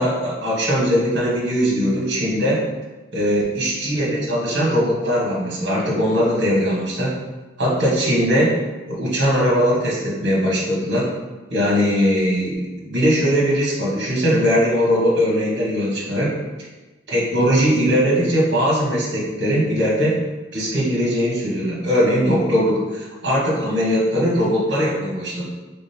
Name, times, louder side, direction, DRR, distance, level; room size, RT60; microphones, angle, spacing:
voice 1, 0.0-2.6 3.1-7.1 7.6-8.5 8.9-11.0 11.5-16.3 17.1-20.2 20.5-25.5, equal, 60° right, -4 dB, 1.0 m, -20 dB
3.8 x 3.4 x 2.7 m, 1.2 s
head